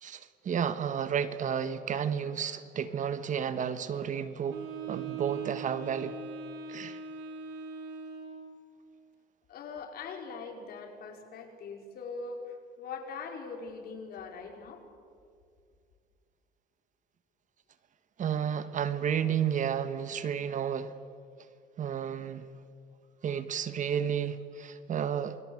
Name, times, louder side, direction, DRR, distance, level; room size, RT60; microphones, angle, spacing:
voice 1, 0.0-4.6 4.9-6.1 6.7-7.0 18.2-20.9 21.8-22.5 23.2-25.4, right 8 dB, 50° right, 1.5 m, -32 dB
Wind instrument woodwind instrument, 4.5-8.6, right 5 dB, 85° right, 3.7 m, -41 dB
voice 2, 9.5-14.8, left 4 dB, 65° left, 4.9 m, -42 dB
29.0 x 21.5 x 7.9 m
cardioid pair, 110°, 17 cm